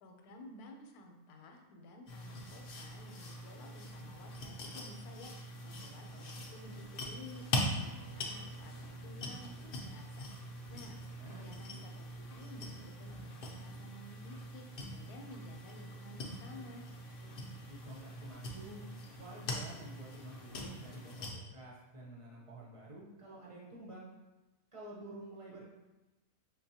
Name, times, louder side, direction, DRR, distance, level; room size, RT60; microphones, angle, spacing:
voice 1, 0.0-7.4 7.8-10.3 10.7-14.7 15.0-16.8, left 1 dB, 90° left, 3 dB, 1.1 m, -53 dB
sound 1, 2.1-21.3, left 1 dB, 65° left, 0.5 m, -43 dB
sound 2, 6.0-7.3 8.0-8.1 8.3-8.6 8.9-9.8 10.6-11.6 11.9-12.1 13.0-14.6 14.9-15.2 16.5-16.8 17.2-17.4 18.2-18.5 19.0-19.3 19.7-19.8 20.9-21.0, right 1 dB, 90° right, 1.1 m, -61 dB
sound 3, 7.6-12.7, right 3 dB, 35° left, 0.8 m, -61 dB
voice 2, 11.1-11.8 17.7-18.9 19.2-24.1 24.7-25.7, right 1 dB, 40° right, -5 dB, 0.5 m, -50 dB
5.4 x 2.2 x 2.7 m, 1.1 s
omnidirectional pair, 1.6 m